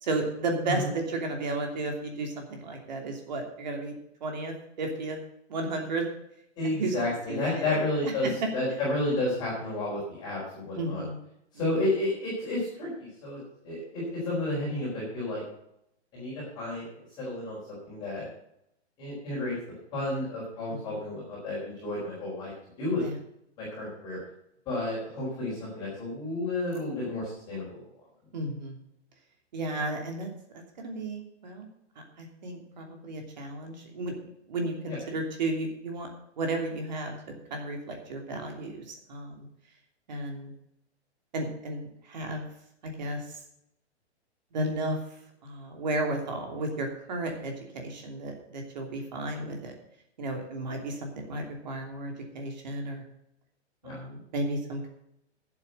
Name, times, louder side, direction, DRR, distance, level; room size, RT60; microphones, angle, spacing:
voice 1, 0.0-3.9 4.2-5.2 5.5-6.0 6.7-6.9 7.3-7.7 10.8-11.2 20.7-21.0 23.0-23.2 28.3-28.8 29.5-30.3 30.5-31.7 32.2-34.1 34.5-36.1 36.4-39.5 40.1-40.5 41.3-42.5 42.8-43.2 44.5-45.0 45.4-49.7 50.2-53.0 53.8-54.9, right 2 dB, 40° right, 2 dB, 2.9 m, -33 dB
voice 2, 6.6-11.0 11.5-15.4 16.1-18.3 19.0-19.5 19.9-22.5 22.8-23.0 23.6-24.2 24.7-27.8 34.9-35.0 53.8-54.0, left 2 dB, 10° left, -8 dB, 4.3 m, -31 dB
11.5 x 8.1 x 6.6 m, 0.77 s
hypercardioid pair, 180°, 34 cm